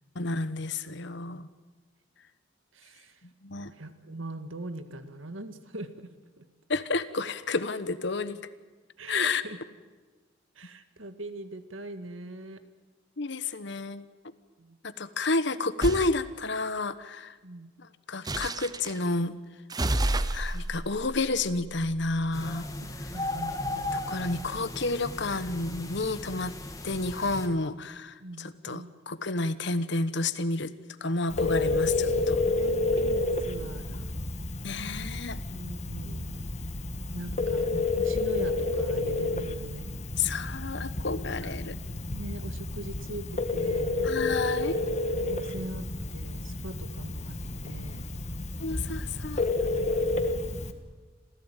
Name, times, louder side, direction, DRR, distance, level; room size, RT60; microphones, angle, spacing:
voice 1, 0.1-1.5 3.4-3.7 6.7-8.4 9.1-9.4 13.2-14.1 14.8-17.3 17.8-19.4 20.3-22.7 23.9-26.5 26.8-30.7 31.0-32.4 34.6-35.4 40.2-41.8 44.0-44.8 48.6-49.4, left 3 dB, 60° left, 14 dB, 1.1 m, -30 dB
voice 2, 2.7-3.2 3.6-6.1 6.4-6.5 9.0-9.6 10.6-12.6 14.6-14.8 17.4-17.7 22.8-23.9 28.2-28.9 32.3-34.1 35.5-36.4 37.1-40.0 41.4-41.5 42.1-44.0 45.3-47.4 47.6-48.0 49.6-50.1, right 1 dB, 85° right, 9 dB, 1.9 m, -41 dB
sound 1, 15.8-16.1 18.2-19.0 19.7-22.3, right 1 dB, 20° right, 0.8 m, -31 dB
sound 2, 22.3-27.5, left 2 dB, 15° left, 2.0 m, -36 dB
Telephone, 31.3-50.7, left 2 dB, 35° left, 1.5 m, -30 dB
27.5 x 16.0 x 9.1 m, 1.3 s
head